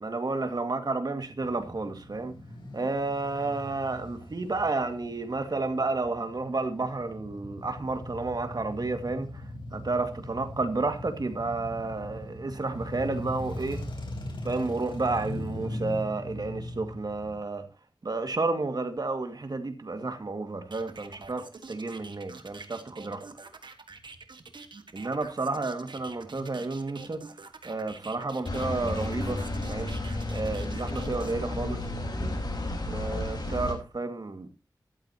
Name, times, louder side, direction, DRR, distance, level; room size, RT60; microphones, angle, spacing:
voice 1, 0.0-2.4 2.7-13.8 14.4-17.7 18.0-23.3 24.9-27.4 27.6-29.4 29.7-31.8 32.9-34.5, right 3 dB, 60° right, 2.1 m, -31 dB
Male speech man speaking / Motorcycle / Idling, 1.4-17.4, left 1 dB, 85° left, 4.0 m, -40 dB
sound 1, 20.7-31.3, right 4 dB, 80° right, 1.6 m, -46 dB
sound 2, 28.4-33.7, left 2 dB, 60° left, 4.4 m, -32 dB
14.0 x 11.5 x 2.9 m
wide cardioid pair, 70°, 8 cm